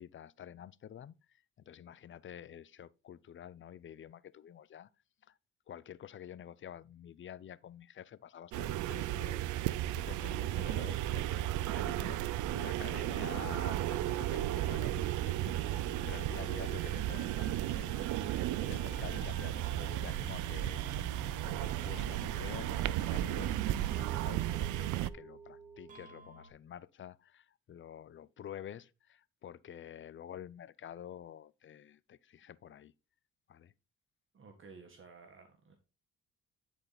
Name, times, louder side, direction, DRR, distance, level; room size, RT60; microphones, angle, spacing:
voice 1, 0.0-4.9 5.3-5.4 5.7-9.5 9.9-32.9 33.5-33.7, left 10 dB, 40° left, 0.5 m, -49 dB
sound 1, 8.5-25.1, right 14 dB, 80° right, 0.5 m, -34 dB
sound 2, 13.5-23.6, left 5 dB, 70° left, 1.7 m, -52 dB
sound 3, 18.8-26.5, right 3 dB, 25° right, 2.6 m, -56 dB
voice 2, 34.3-35.8, right 4 dB, 40° right, 1.4 m, -54 dB
10.5 x 4.3 x 3.9 m
cardioid pair, 90°, 30 cm